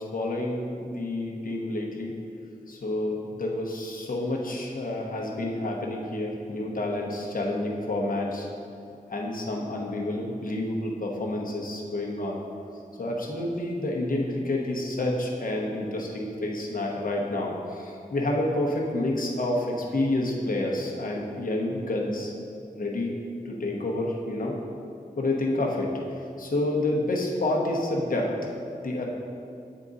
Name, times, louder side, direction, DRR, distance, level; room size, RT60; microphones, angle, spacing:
voice 1, 0.0-2.2 2.7-8.5 9.1-12.4 13.0-22.3 22.8-23.2 23.4-24.6 25.2-25.9 26.4-28.3 28.8-29.0, left 1 dB, 65° left, -2 dB, 0.9 m, -29 dB
8.1 x 3.7 x 4.0 m, 2.5 s
wide cardioid pair, 75°, 15 cm